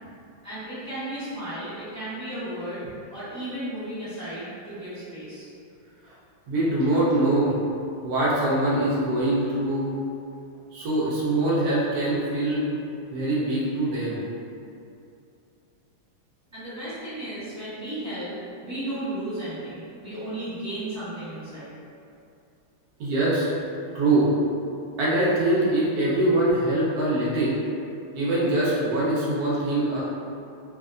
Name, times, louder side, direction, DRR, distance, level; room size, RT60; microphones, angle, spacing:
voice 1, 0.4-2.8 3.1-5.5 16.5-18.3 18.6-21.7, right 1 dB, 10° right, -15 dB, 0.9 m, -34 dB
voice 2, 6.5-7.5 8.0-9.9 10.7-12.7 13.1-14.2 23.0-23.5 23.9-24.3 25.0-27.6 28.1-30.0, right 1 dB, 80° right, -7 dB, 0.8 m, -23 dB
3.2 x 2.7 x 2.4 m, 2.6 s
omnidirectional pair, 2.4 m